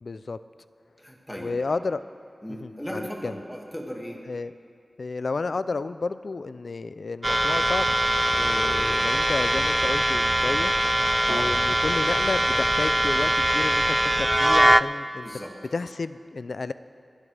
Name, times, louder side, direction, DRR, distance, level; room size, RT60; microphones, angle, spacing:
voice 1, 0.0-0.4 1.4-2.0 2.6-3.3 4.3-4.5 5.0-8.0 8.4-10.7 11.3-15.3 15.7-16.7, left 3 dB, 75° left, 13 dB, 0.4 m, -31 dB
voice 2, 1.0-1.5 2.4-4.2 8.7-9.0 11.2-11.5 15.2-15.6, equal, 5° left, -1 dB, 2.1 m, -37 dB
sound 1, 7.2-14.8, right 1 dB, 15° right, 0.3 m, -22 dB
26.5 x 11.0 x 3.4 m, 2.3 s
wide cardioid pair, 85°, 0 cm